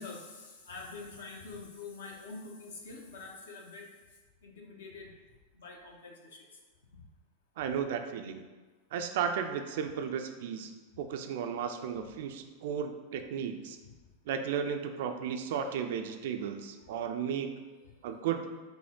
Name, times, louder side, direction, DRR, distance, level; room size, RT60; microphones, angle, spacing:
voice 1, 0.0-3.9 4.4-5.1 5.5-6.6 6.9-7.0 13.9-14.0 17.7-18.0, left 3 dB, 60° left, 1 dB, 0.7 m, -46 dB
voice 2, 7.6-8.4 8.9-10.7 11.0-13.8 14.3-17.6 18.0-18.5, right 7 dB, 55° right, 6 dB, 0.3 m, -34 dB
5.2 x 2.1 x 3.6 m, 1.3 s
figure-of-eight pair, 90°, 0 cm